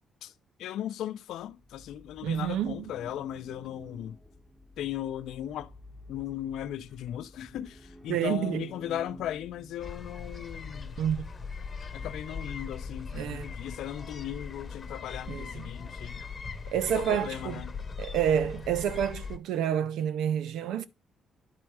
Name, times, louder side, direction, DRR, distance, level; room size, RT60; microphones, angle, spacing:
voice 1, 0.6-4.2 4.8-5.7 6.1-11.0 11.9-16.2 16.9-17.7, left 11 dB, 80° left, 0.5 m, -37 dB
sound 1, 1.5-10.7, equal, 5° left, 1.1 m, -51 dB
voice 2, 2.2-2.9 8.1-8.7 11.0-11.2 13.1-13.5 15.3-15.7 16.7-17.6 18.0-20.9, right 9 dB, 85° right, 0.6 m, -29 dB
sound 2, 9.8-19.4, left 5 dB, 35° left, 1.0 m, -40 dB
9.8 x 4.4 x 4.6 m
cardioid pair, 90°, 0 cm